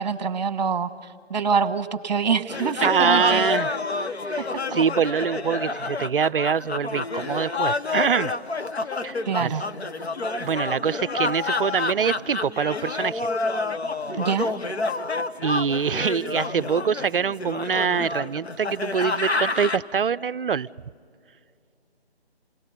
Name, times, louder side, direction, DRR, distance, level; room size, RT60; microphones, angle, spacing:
voice 1, 0.0-3.5 9.3-9.6 14.2-14.5, right 5 dB, 40° right, 12 dB, 1.1 m, -25 dB
sound 1, 2.5-19.8, left 3 dB, 75° left, 1.1 m, -29 dB
voice 2, 2.8-3.8 4.3-4.4 4.7-8.3 9.0-9.5 10.4-13.3 15.4-20.7, right 6 dB, 55° right, 18 dB, 0.5 m, -24 dB
28.5 x 19.0 x 5.6 m, 2.5 s
figure-of-eight pair, 150°, 32 cm